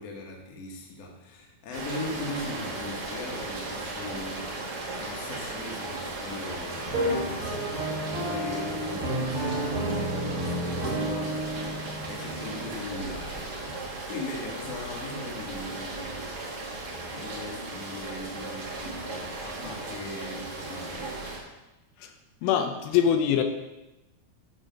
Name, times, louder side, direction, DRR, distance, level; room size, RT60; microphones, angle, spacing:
voice 1, 0.0-4.5 5.0-16.3 17.1-21.1, left 2 dB, 55° left, 0 dB, 2.1 m, -40 dB
Rain, 1.7-21.4, right 2 dB, 85° right, 0.9 m, -36 dB
sound 1, 6.8-12.7, right 1 dB, 30° right, 1.7 m, -31 dB
voice 2, 22.4-23.4, left 9 dB, 85° left, 6 dB, 2.5 m, -23 dB
11.0 x 5.0 x 5.2 m, 1.0 s
omnidirectional pair, 4.3 m